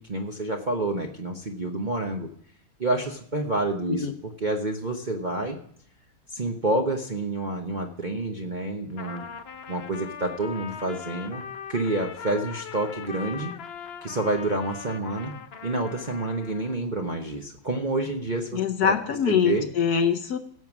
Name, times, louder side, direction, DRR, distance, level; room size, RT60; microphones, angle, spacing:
voice 1, 0.0-2.3 2.8-4.1 4.4-5.6 6.3-9.3 9.7-11.4 11.7-13.5 14.0-15.3 15.6-19.0 19.3-19.7, right 2 dB, 35° right, 1 dB, 0.8 m, -28 dB
Trumpet, 8.9-16.8, left 7 dB, 85° left, 0.5 m, -40 dB
voice 2, 18.5-20.4, left 7 dB, 65° left, 7 dB, 1.1 m, -24 dB
16.0 x 7.3 x 6.1 m, 0.63 s
omnidirectional pair, 2.1 m